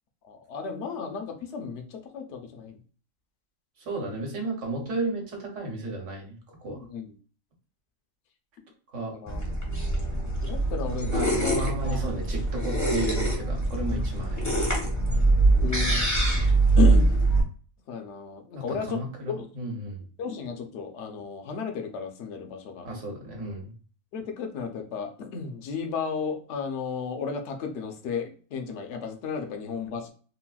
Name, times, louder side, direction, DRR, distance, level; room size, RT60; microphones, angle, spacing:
voice 1, 0.2-2.8 6.7-7.1 9.1-12.1 15.5-16.1 16.8-17.1 17.9-19.5 20.2-22.9 24.1-30.1, left 6 dB, 65° left, 4 dB, 0.8 m, -34 dB
voice 2, 3.8-6.8 8.9-9.2 11.1-14.6 18.5-20.0 22.8-23.7, right 2 dB, 65° right, 1 dB, 1.2 m, -33 dB
sound 1, 9.3-17.4, right 2 dB, 20° left, 0.6 m, -23 dB
3.8 x 2.1 x 2.3 m, 0.40 s
omnidirectional pair, 1.4 m